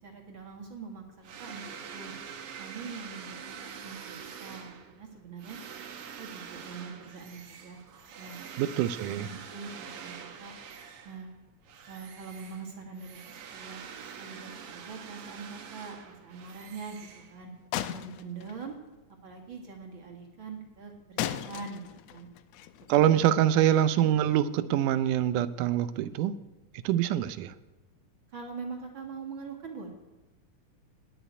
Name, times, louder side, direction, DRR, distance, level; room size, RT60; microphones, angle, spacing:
voice 1, 0.0-2.1 2.6-5.6 6.2-7.8 8.2-8.4 9.2-10.5 11.0-11.3 11.9-13.8 14.2-17.5 17.9-18.7 19.2-22.3 23.0-23.2 28.3-29.9, right 4 dB, 45° right, 2 dB, 2.3 m, -43 dB
sound 1, 1.2-11.3 11.6-17.7, right 7 dB, 60° right, 1.7 m, -45 dB
voice 2, 8.6-9.3 22.9-26.4 26.8-27.5, right 11 dB, 85° right, 14 dB, 2.2 m, -25 dB
sound 2, 17.7-18.9 21.2-23.7, left 11 dB, 80° left, 1.5 m, -37 dB
18.0 x 6.2 x 9.3 m, 1.1 s
omnidirectional pair, 3.6 m